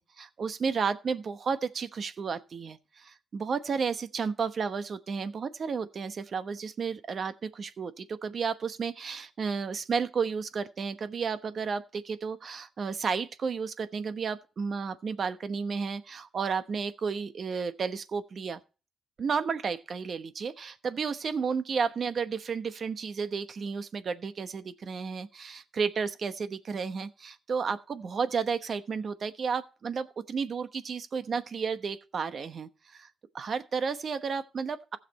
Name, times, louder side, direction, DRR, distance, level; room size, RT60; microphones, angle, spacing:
voice 1, 0.2-18.6 19.2-33.1 33.3-35.0, right 5 dB, 50° right, 1.0 m, -32 dB
15.5 x 6.7 x 4.2 m
cardioid pair, 90°, 0 cm